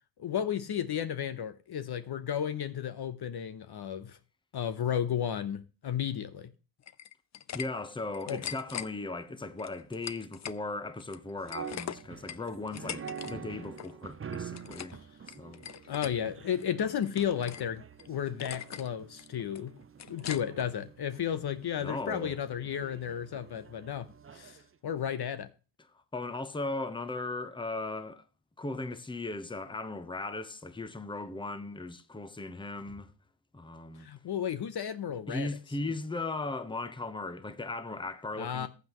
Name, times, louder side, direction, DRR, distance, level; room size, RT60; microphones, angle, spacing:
voice 1, 0.2-4.2 4.5-6.5 8.3-8.4 15.9-19.7 20.1-24.6 24.8-25.5 34.0-35.5 38.4-38.7, left 9 dB, 50° left, 0.9 m, -33 dB
sound 1, 6.8-7.7 8.0-8.9 9.6-10.6 11.0-13.3 13.6-13.9 14.3-15.0 15.3-16.1 16.6-17.7 18.0-18.1 18.4-18.9 19.2-20.7, left 9 dB, 35° left, 0.5 m, -41 dB
voice 2, 7.5-15.0 15.4-15.6 21.8-22.4 26.1-28.2 28.6-33.1 33.5-34.1 35.3-38.7, left 2 dB, 10° left, 0.9 m, -37 dB
sound 2, 11.4-24.7, right 7 dB, 25° right, 0.6 m, -47 dB
14.5 x 8.0 x 3.0 m
cardioid pair, 75°, 49 cm